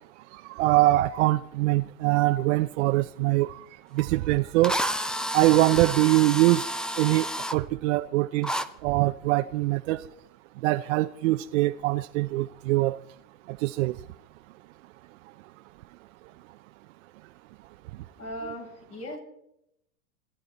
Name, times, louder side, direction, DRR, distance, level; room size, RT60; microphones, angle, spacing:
voice 1, 0.3-3.6 3.9-4.8 5.3-6.6 7.0-8.6 8.8-10.0 10.6-13.0 13.5-14.0, right 17 dB, 55° right, 8 dB, 0.7 m, -23 dB
Drill, 4.0-4.1 4.6-7.6 8.4-8.7, equal, ahead, 0.6 m, -30 dB
voice 2, 18.2-19.2, equal, 35° left, 1 dB, 7.7 m, -37 dB
27.0 x 12.5 x 4.1 m, 0.78 s
hypercardioid pair, 115°, 44 cm